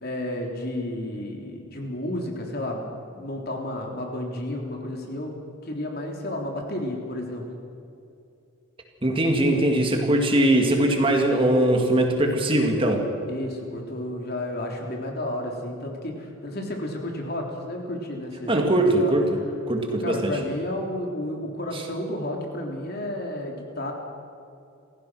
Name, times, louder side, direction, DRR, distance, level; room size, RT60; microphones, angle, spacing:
voice 1, 0.0-2.9 3.1-5.4 5.6-7.4 13.3-18.7 19.0-19.2 20.0-23.9, left 1 dB, 50° left, 1 dB, 3.5 m, -32 dB
voice 2, 9.0-13.0 18.5-19.3 19.7-20.3 21.7-21.8, right 1 dB, 25° right, 2 dB, 2.3 m, -21 dB
29.5 x 16.0 x 6.3 m, 2.6 s
head